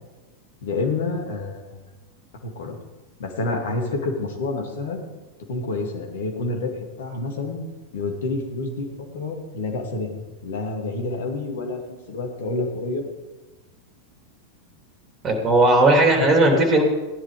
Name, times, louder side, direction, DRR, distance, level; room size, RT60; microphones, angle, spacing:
voice 1, 0.6-1.8 2.4-2.8 3.2-5.0 5.5-6.7 7.0-7.6 7.9-13.0, left 3 dB, 60° left, 2 dB, 2.4 m, -28 dB
voice 2, 15.2-16.8, right 2 dB, 25° right, 3 dB, 3.1 m, -16 dB
15.5 x 10.5 x 5.0 m, 1.2 s
figure-of-eight pair, 90°, 0 cm